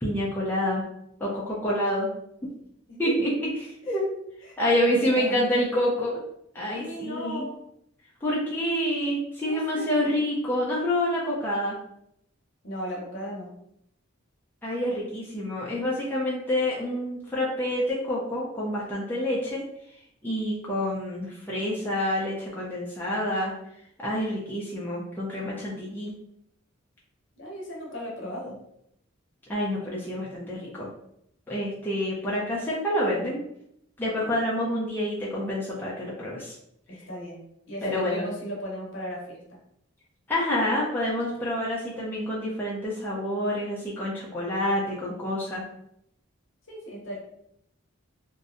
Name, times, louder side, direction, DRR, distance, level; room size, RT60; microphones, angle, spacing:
voice 1, 0.0-0.8 1.2-2.1 3.0-4.1 4.6-6.2 6.5-7.4 8.2-11.8 14.6-19.6 20.2-23.5 24.0-26.1 29.5-30.9 31.5-33.4 34.0-36.5 37.8-38.2 40.3-45.6, left 1 dB, 10° left, -7 dB, 0.4 m, -27 dB
voice 2, 4.4-5.6 6.7-7.6 9.4-10.0 12.6-13.5 27.4-28.6 34.2-34.3 36.9-37.4 37.7-39.6 46.7-47.2, equal, 60° left, -2 dB, 0.7 m, -37 dB
2.6 x 2.1 x 2.5 m, 0.76 s
head